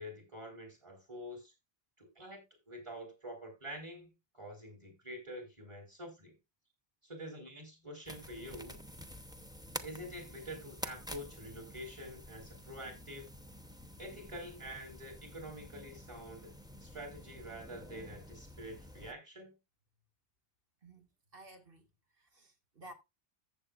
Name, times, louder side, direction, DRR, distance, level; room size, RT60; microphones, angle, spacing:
voice 1, 0.0-1.5 2.0-6.3 7.0-8.8 9.8-13.3 14.0-16.5 16.8-19.5, equal, 30° right, 4.6 m, -47 dB
sound 1, 8.1-19.1, equal, 5° right, 0.8 m, -49 dB
voice 2, 21.3-21.8 22.2-22.9, right 1 dB, 65° right, 2.0 m, -54 dB
14.5 x 8.1 x 2.4 m
omnidirectional pair, 1.0 m